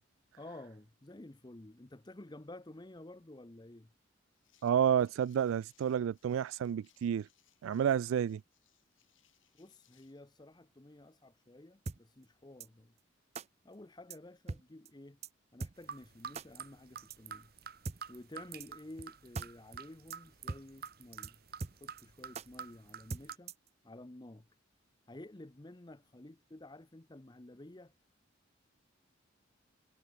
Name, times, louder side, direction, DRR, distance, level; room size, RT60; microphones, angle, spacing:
voice 1, 0.4-3.9 9.6-12.9 13.6-15.2 15.5-17.5 18.1-23.5 23.8-24.5 25.1-27.9, left 1 dB, 20° left, 0.8 m, -52 dB
sound 1, 4.3-10.2, left 12 dB, 75° left, 7.0 m, -72 dB
voice 2, 4.6-7.3 7.6-8.4, right 9 dB, 90° right, 0.3 m, -30 dB
sound 2, 11.9-12.0 12.6-12.7 13.3-13.5 14.1-14.2 14.5-14.6 14.9-15.0 15.2-15.3 15.6-15.7 16.3-16.5 17.1-17.2 17.8-18.0 18.6-18.7 19.0-19.1 19.3-19.5 19.7-19.8 20.1-20.2 20.5-20.6 20.9-21.0 21.2-21.3 21.6-22.0 22.3-22.5 23.1-23.7, right 3 dB, 30° right, 0.5 m, -40 dB
sound 3, 15.8-23.4, right 7 dB, 50° right, 2.0 m, -48 dB
head